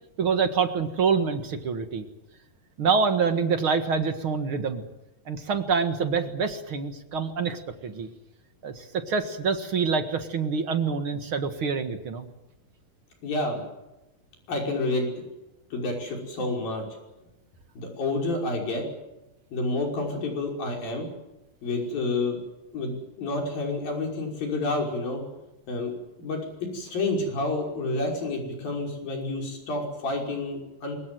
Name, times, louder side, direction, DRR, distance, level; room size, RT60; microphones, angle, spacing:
voice 1, 0.2-2.1 2.8-4.8 5.3-8.1 8.6-12.3, right 5 dB, 45° right, 8 dB, 2.0 m, -26 dB
voice 2, 13.2-13.6 14.5-15.2 15.7-16.8 17.8-18.8 19.5-21.1 21.6-22.4 22.7-25.2 25.7-25.9 26.2-31.0, left 2 dB, 80° left, 1 dB, 7.4 m, -29 dB
24.5 x 22.0 x 7.8 m, 0.98 s
omnidirectional pair, 4.1 m